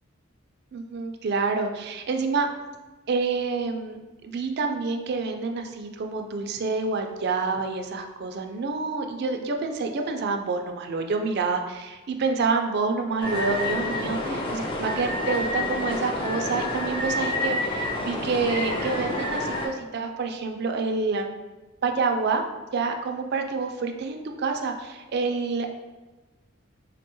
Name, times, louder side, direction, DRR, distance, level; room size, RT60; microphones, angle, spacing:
voice 1, 0.7-2.5 3.1-21.3 21.8-22.4 22.7-25.7, right 4 dB, 50° right, 4 dB, 0.3 m, -28 dB
sound 1, 13.2-19.7, left 1 dB, 25° left, 0.4 m, -28 dB
3.7 x 2.2 x 2.9 m, 1.2 s
head